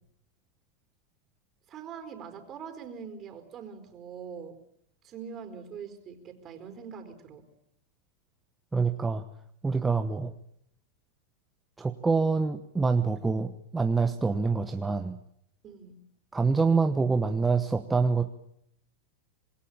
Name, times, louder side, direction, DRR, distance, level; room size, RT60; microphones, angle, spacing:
voice 1, 1.7-4.6 5.0-7.4 15.6-16.0, right 7 dB, 30° right, 8 dB, 4.7 m, -43 dB
voice 2, 8.7-9.2 9.6-10.3 11.8-15.2 16.3-18.3, right 4 dB, 10° right, 7 dB, 1.1 m, -26 dB
26.5 x 21.5 x 8.9 m, 0.72 s
supercardioid pair, 130°, 0 cm